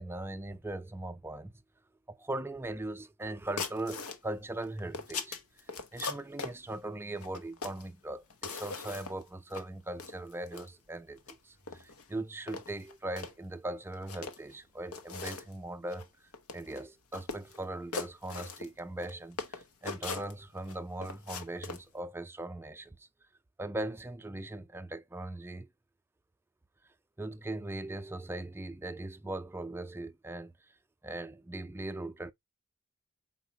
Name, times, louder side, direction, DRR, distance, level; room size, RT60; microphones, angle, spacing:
voice 1, 0.0-1.5 2.1-5.4 5.7-23.1 23.6-25.7 27.2-30.7 31.0-32.3, right 2 dB, 10° right, 0.4 m, -40 dB
sound 1, 3.6-4.2 4.6-6.6 7.2-7.9 8.3-9.2 9.5-9.6 10.0-10.7 11.2-11.4 11.7-12.0 12.5-13.3 13.9-14.5 14.9-15.5 15.9-16.1 16.3-16.8 17.1-17.6 17.9-19.1 19.4-20.7 21.0-21.8, left 4 dB, 90° left, 0.8 m, -40 dB
4.6 x 4.2 x 2.7 m
head